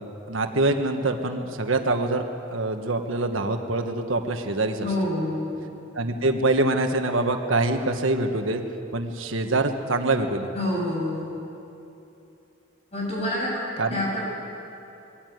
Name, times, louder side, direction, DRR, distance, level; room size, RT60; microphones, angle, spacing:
voice 1, 0.0-2.2 2.5-4.9 5.9-8.6 8.9-10.5 13.8-14.0, right 2 dB, 80° right, 5 dB, 1.4 m, -25 dB
voice 2, 4.8-5.7 10.5-11.3 12.9-13.5 13.9-14.2, left 1 dB, 30° left, -4 dB, 7.3 m, -27 dB
21.5 x 16.0 x 9.4 m, 2.8 s
head